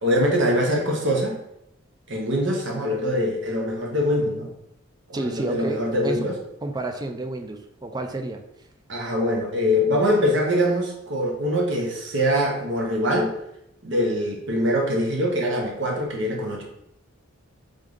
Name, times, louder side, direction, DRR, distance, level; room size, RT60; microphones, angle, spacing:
voice 1, 0.0-1.4 2.1-4.5 5.1-6.3 8.9-13.4 13.8-16.6, equal, 60° right, 0 dB, 1.0 m, -23 dB
voice 2, 5.1-6.3 6.6-8.7, right 2 dB, 20° right, 5 dB, 0.4 m, -30 dB
3.7 x 3.6 x 3.7 m, 0.81 s
head